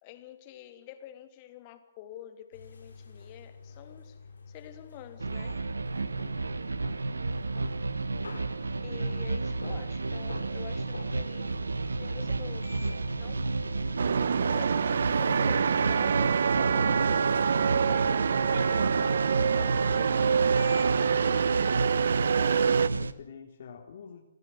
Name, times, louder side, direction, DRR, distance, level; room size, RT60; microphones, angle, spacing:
voice 1, 0.0-4.2 4.5-5.6 8.8-11.6 11.9-12.8 13.2-14.0 14.3-20.4, left 12 dB, 35° left, 8 dB, 3.2 m, -47 dB
sound 1, 2.5-21.6, left 4 dB, 75° left, 7.0 m, -47 dB
sound 2, 5.2-23.1, right 3 dB, 85° right, 1.5 m, -32 dB
sound 3, 14.0-22.9, right 6 dB, 65° right, 1.0 m, -26 dB
voice 2, 22.3-24.2, left 6 dB, 55° left, 2 dB, 3.5 m, -48 dB
27.5 x 16.5 x 8.1 m, 0.74 s
figure-of-eight pair, 135°, 0 cm